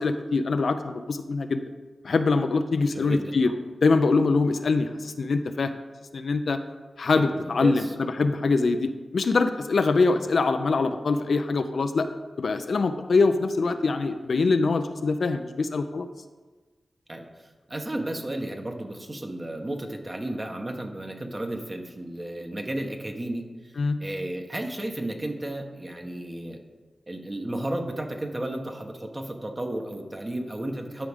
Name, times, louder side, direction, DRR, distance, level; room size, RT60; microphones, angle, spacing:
voice 1, 0.0-1.6 2.0-3.5 3.8-5.7 6.1-6.6 7.0-7.9 8.2-12.1 12.4-16.1 23.8-24.0, left 3 dB, 70° left, 8 dB, 0.4 m, -23 dB
voice 2, 2.9-3.5 4.3-4.4 7.2-7.9 13.7-13.8 17.1-17.3 17.7-26.6 27.1-31.1, right 1 dB, 30° right, 3 dB, 1.1 m, -33 dB
12.0 x 4.8 x 3.6 m, 1.3 s
cardioid pair, 60°, 0 cm